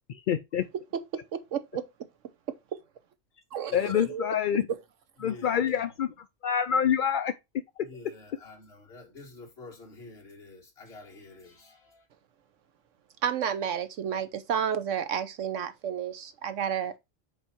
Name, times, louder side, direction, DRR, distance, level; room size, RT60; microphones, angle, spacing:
voice 1, 0.3-0.6 3.7-4.7 5.2-6.1 6.4-7.3, left 8 dB, 70° left, 0.4 m, -26 dB
voice 2, 1.3-1.8 3.5-4.3 13.2-16.9, right 8 dB, 70° right, 1.1 m, -31 dB
voice 3, 3.7-4.2 5.2-5.9 7.8-12.1, left 2 dB, 50° left, 2.1 m, -48 dB
5.4 x 4.7 x 4.4 m
omnidirectional pair, 1.4 m